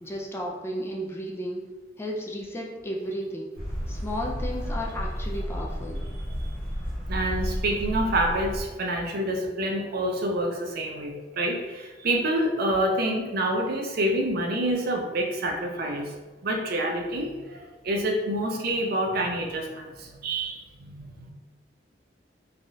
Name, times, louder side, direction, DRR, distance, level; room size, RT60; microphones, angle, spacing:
voice 1, 0.0-1.6 2.0-3.6 3.9-6.0, equal, 15° left, -2 dB, 0.3 m, -33 dB
sound 1, 3.6-8.6, equal, 5° right, 1.1 m, -32 dB
voice 2, 5.9-6.4 7.1-16.1 16.4-21.3, right 1 dB, 55° right, 2 dB, 0.5 m, -27 dB
3.3 x 2.3 x 2.6 m, 1.2 s
head